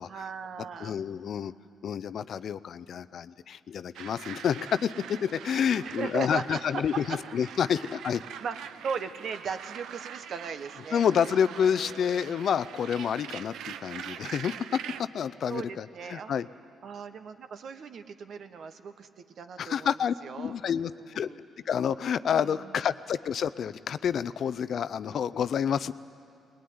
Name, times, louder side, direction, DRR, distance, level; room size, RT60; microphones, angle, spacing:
voice 1, 0.1-1.0 5.8-6.8 7.7-7.9 8.4-12.3 15.5-16.3 16.8-19.9 20.2-21.4 22.4-22.8, right 6 dB, 60° right, 9 dB, 1.2 m, -38 dB
voice 2, 0.8-1.5 1.8-8.2 10.9-14.6 15.0-16.5 19.6-21.3 21.7-25.9, left 8 dB, 60° left, 15 dB, 0.5 m, -29 dB
sound 1, 3.9-15.0, right 9 dB, 80° right, 0.7 m, -43 dB
20.5 x 20.5 x 9.5 m, 2.4 s
cardioid pair, 90°, 0 cm